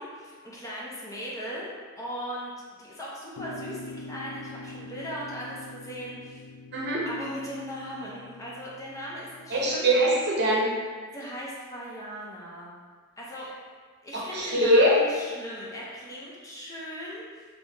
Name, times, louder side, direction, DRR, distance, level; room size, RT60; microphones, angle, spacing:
voice 1, 0.0-1.7 2.0-2.5 2.8-6.4 7.1-10.0 11.1-12.7 13.2-13.5 14.0-17.5, equal, 15° left, -6 dB, 0.6 m, -38 dB
sound 1, 3.4-9.8, left 2 dB, 60° left, 0.3 m, -44 dB
voice 2, 6.7-7.1 9.5-10.7 14.1-15.0, right 1 dB, 50° right, -4 dB, 0.7 m, -22 dB
3.3 x 2.7 x 3.3 m, 1.5 s
head